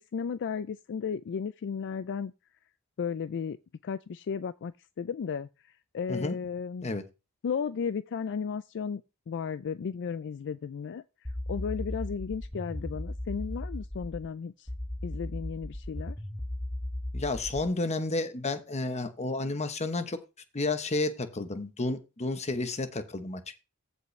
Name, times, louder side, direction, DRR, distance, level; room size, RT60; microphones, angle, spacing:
voice 1, 0.0-2.3 3.0-3.6 3.8-6.9 7.4-9.0 9.3-14.7 15.0-16.2, left 6 dB, 55° left, 0.4 m, -34 dB
sound 1, 11.2-14.3 14.7-17.7, left 1 dB, 15° left, 1.4 m, -36 dB
voice 2, 17.1-20.2 20.5-23.6, left 2 dB, 30° left, 1.0 m, -31 dB
14.5 x 5.4 x 3.2 m
head